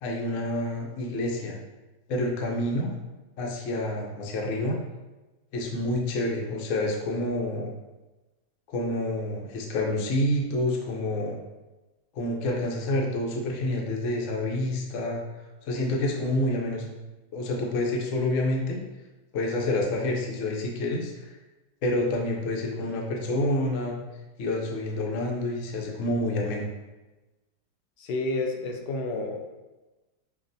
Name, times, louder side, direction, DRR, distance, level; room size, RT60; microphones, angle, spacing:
voice 1, 0.0-1.6 2.1-2.9 3.4-4.8 5.5-7.7 8.7-11.4 12.1-15.2 15.7-16.8 17.3-18.8 19.3-21.3 21.8-24.0 24.4-26.7, left 1 dB, 60° left, 0 dB, 0.9 m, -28 dB
voice 2, 28.0-29.5, left 2 dB, 85° left, 3 dB, 1.2 m, -30 dB
5.7 x 2.4 x 2.6 m, 1.1 s
omnidirectional pair, 1.8 m